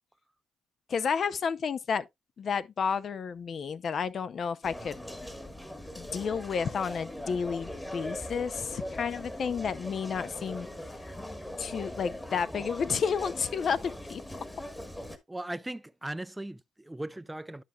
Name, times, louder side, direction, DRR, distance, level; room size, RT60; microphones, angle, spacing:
voice 1, 0.9-2.0 2.4-5.0 6.0-10.7 11.6-14.2, left 6 dB, 50° left, 0.5 m, -31 dB
sound 1, 4.6-15.2, left 1 dB, 10° left, 1.3 m, -40 dB
voice 2, 15.3-17.6, right 1 dB, 10° right, 0.5 m, -38 dB
11.0 x 5.6 x 2.3 m
cardioid pair, 90°, 0 cm